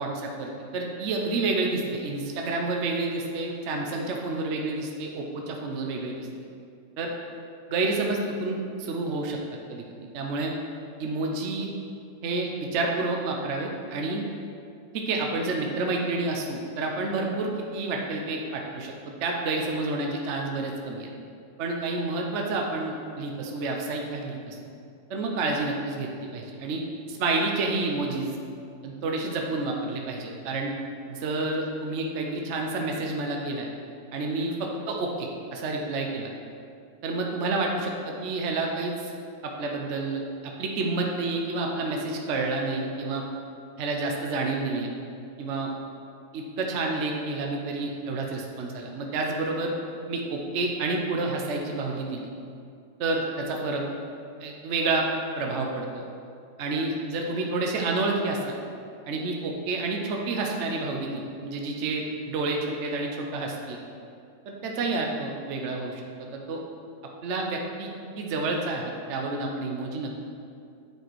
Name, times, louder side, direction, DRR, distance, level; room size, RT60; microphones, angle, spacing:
voice 1, 0.0-6.3 7.0-7.1 7.7-9.4 9.7-9.8 10.1-10.5 11.0-11.7 12.2-14.2 14.9-18.9 19.2-21.1 21.6-24.6 25.1-26.8 27.1-28.4 28.8-30.7 31.1-33.7 34.1-36.3 37.0-38.9 39.4-40.2 40.6-43.2 43.8-44.9 45.4-45.7 46.3-49.7 50.1-52.3 53.0-53.8 54.4-55.1 55.4-56.0 56.6-58.6 59.1-63.8 64.5-66.6 67.2-67.9 68.2-70.2, right 3 dB, 55° right, 0 dB, 0.8 m, -29 dB
9.3 x 4.5 x 4.5 m, 2.4 s
omnidirectional pair, 1.9 m